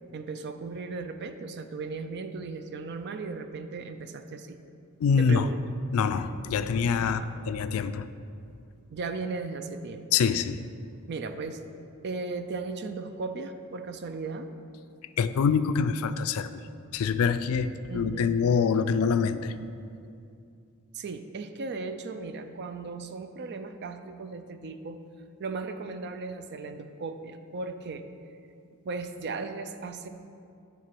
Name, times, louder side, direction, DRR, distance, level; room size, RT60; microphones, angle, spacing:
voice 1, 0.1-4.6 5.2-5.6 7.0-7.3 8.9-10.1 11.1-11.6 12.0-14.5 17.9-18.4 20.9-25.0 25.4-28.1 28.8-30.1, right 4 dB, 50° right, 9 dB, 0.4 m, -36 dB
voice 2, 5.0-5.5 5.9-8.1 10.1-10.6 15.2-16.6 16.9-19.5, left 6 dB, 70° left, 12 dB, 0.3 m, -25 dB
9.4 x 3.8 x 5.9 m, 2.5 s
head